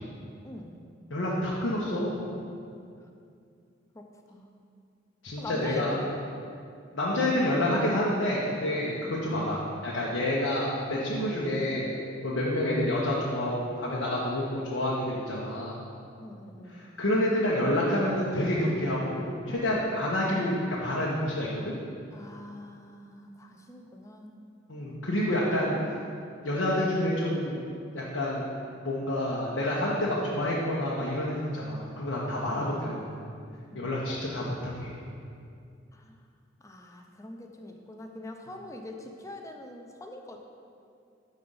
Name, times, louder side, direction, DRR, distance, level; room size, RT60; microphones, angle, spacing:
voice 1, 0.4-0.8 3.0-3.1 3.9-4.5 5.4-6.1 9.0-9.2 16.2-16.8 22.1-24.4 32.5-33.0 33.7-33.9 35.9-36.2 36.6-40.4, left 1 dB, 15° left, 3 dB, 0.5 m, -43 dB
voice 2, 1.1-2.2 5.2-5.9 6.9-11.9 12.2-15.8 16.7-21.8 24.7-25.8 26.4-27.6 27.9-28.5 28.8-33.2 33.7-34.9, left 1 dB, 90° left, -5 dB, 0.9 m, -28 dB
6.5 x 4.2 x 5.4 m, 2.4 s
head